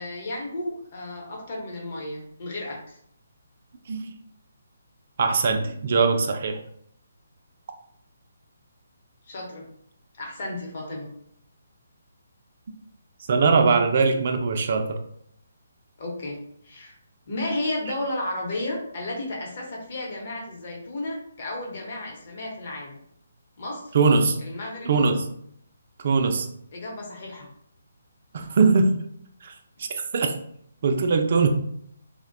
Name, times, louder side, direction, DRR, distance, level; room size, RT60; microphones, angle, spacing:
voice 1, 0.0-3.0 9.3-9.6 10.2-11.1 16.0-16.4 16.6-17.0 17.3-23.0 23.6-23.8 24.4-25.0 26.7-27.5, left 1 dB, 45° left, -1 dB, 0.8 m, -33 dB
voice 2, 5.2-6.6 13.3-15.0 23.9-24.4 24.8-25.2 26.0-26.5 28.3-29.0 29.4-29.5 30.1-30.3 30.8-31.5, right 4 dB, 50° right, 5 dB, 0.3 m, -21 dB
2.5 x 2.1 x 2.5 m, 0.68 s
hypercardioid pair, 155°, 0 cm